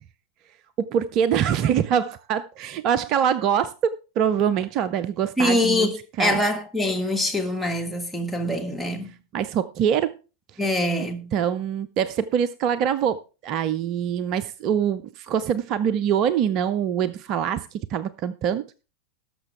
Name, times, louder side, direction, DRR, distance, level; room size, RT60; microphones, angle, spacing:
voice 1, 0.8-5.9 6.2-6.4 9.3-10.2 11.3-18.7, right 8 dB, 40° right, 0.5 m, -24 dB
voice 2, 5.4-9.1 10.6-11.3, left 1 dB, ahead, 1.6 m, -24 dB
18.5 x 6.6 x 3.4 m
figure-of-eight pair, 90°, 0 cm